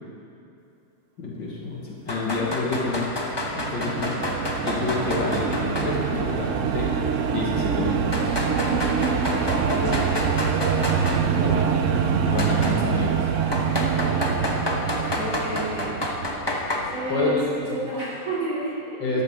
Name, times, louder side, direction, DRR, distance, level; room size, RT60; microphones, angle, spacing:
voice 1, 1.2-3.1 3.5-4.2 4.6-6.9 7.3-8.4 11.4-11.6 12.2-13.3 17.1-17.5 19.0-19.2, left 3 dB, 70° left, -4 dB, 2.2 m, -28 dB
sound 1, 2.1-5.9 6.2-6.3 7.2-7.3 8.1-11.2 12.4-12.8 13.5-16.8, left 1 dB, 25° left, 0.6 m, -29 dB
voice 2, 2.3-2.8 9.7-10.0 14.9-16.0 16.9-19.0, right 1 dB, 45° right, -10 dB, 3.2 m, -31 dB
sound 2, 2.8-17.3, right 6 dB, 70° right, 0.7 m, -25 dB
13.0 x 11.5 x 3.6 m, 2.7 s
omnidirectional pair, 2.1 m